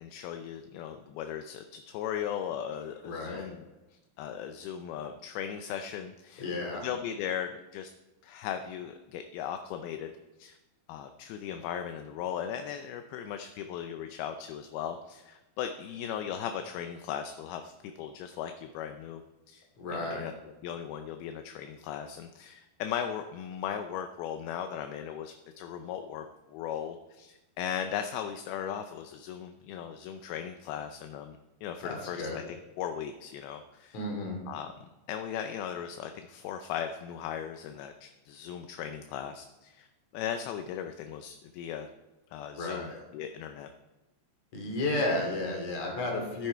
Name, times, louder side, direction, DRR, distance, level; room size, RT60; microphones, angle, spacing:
voice 1, 0.0-7.9 8.2-10.1 10.4-10.6 10.9-19.6 19.9-20.3 20.6-34.0 34.5-34.7 35.1-39.9 40.1-41.9 42.3-43.7, left 9 dB, 80° left, 7 dB, 2.4 m, -38 dB
voice 2, 3.0-3.5 6.4-6.8 19.8-20.3 31.8-32.4 33.9-34.4 42.6-43.0 44.5-46.5, left 2 dB, 45° left, 1 dB, 3.7 m, -32 dB
14.5 x 10.5 x 4.6 m, 1.1 s
omnidirectional pair, 4.8 m